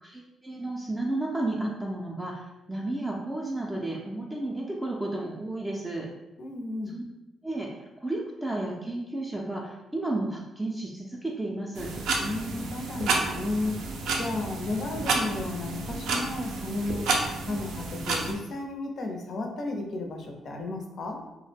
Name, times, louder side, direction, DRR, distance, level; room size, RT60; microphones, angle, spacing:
voice 1, 0.0-6.1 6.9-7.0 7.4-7.7 8.0-11.9, right 2 dB, 10° right, -2 dB, 0.4 m, -32 dB
voice 2, 6.4-6.9 12.2-13.8 14.2-17.1 17.4-21.2, left 2 dB, 55° left, 2 dB, 0.5 m, -33 dB
sound 1, 11.7-18.3, right 3 dB, 80° right, 0.4 m, -30 dB
2.3 x 2.0 x 3.3 m, 0.98 s
cardioid pair, 90°, 0 cm